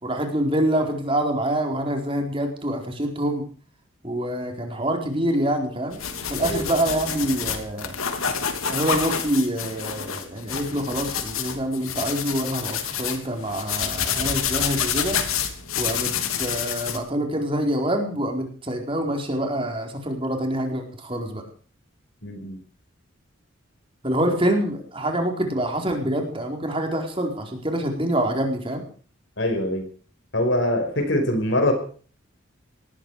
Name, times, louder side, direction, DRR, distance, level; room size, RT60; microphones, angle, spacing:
voice 1, 0.0-3.4 4.0-6.0 6.3-7.9 8.6-15.2 15.8-21.4 24.0-28.8, right 1 dB, 25° right, 3 dB, 4.5 m, -26 dB
sound 1, 5.9-17.0, left 7 dB, 90° left, 3.1 m, -28 dB
voice 2, 22.2-22.6 29.4-29.9 30.3-31.7, left 1 dB, 60° left, 7 dB, 5.3 m, -23 dB
20.0 x 15.0 x 4.9 m, 0.42 s
head